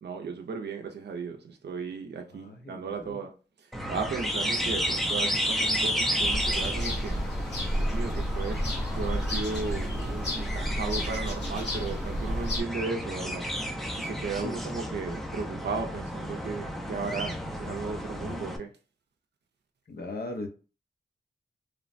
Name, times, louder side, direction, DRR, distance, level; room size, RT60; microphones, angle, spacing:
voice 1, 0.0-3.3 3.6-7.2 7.8-8.7 9.0-13.5 14.0-18.7, right 4 dB, 85° right, 0.4 m, -35 dB
voice 2, 2.3-3.2 14.4-14.6 19.9-20.5, left 2 dB, 65° left, 0.7 m, -38 dB
sound 1, 3.7-18.6, equal, ahead, 0.5 m, -32 dB
sound 2, 6.2-12.6, equal, 90° left, 0.9 m, -31 dB
3.1 x 2.0 x 2.5 m
wide cardioid pair, 85°, 17 cm